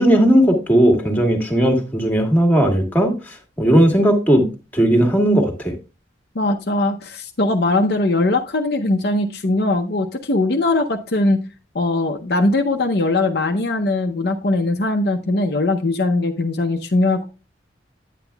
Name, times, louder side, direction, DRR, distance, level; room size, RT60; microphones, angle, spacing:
voice 1, 0.0-4.5 4.7-5.7, right 1 dB, 10° left, 3 dB, 1.5 m, -16 dB
voice 2, 6.3-11.4 11.7-17.3, left 2 dB, 55° left, 4 dB, 0.7 m, -20 dB
9.1 x 8.9 x 2.3 m, 0.30 s
head